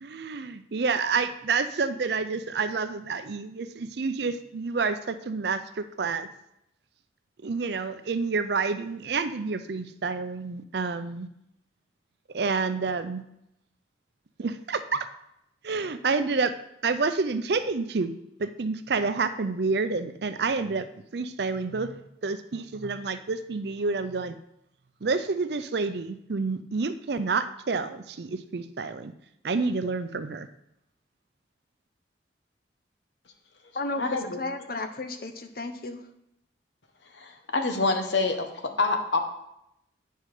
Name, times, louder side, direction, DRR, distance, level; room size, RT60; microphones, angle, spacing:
voice 1, 0.0-6.3 7.4-11.3 12.3-13.2 14.4-15.1 15.6-16.5 16.8-18.1 18.4-20.9 21.1-24.4 25.0-29.1 29.4-30.5, right 4 dB, 65° right, 11 dB, 0.5 m, -29 dB
voice 2, 33.7-36.1, left 2 dB, 55° left, 8 dB, 0.8 m, -33 dB
voice 3, 37.2-38.5 38.8-39.2, left 3 dB, 80° left, 5 dB, 1.1 m, -26 dB
9.1 x 5.5 x 4.9 m, 0.81 s
head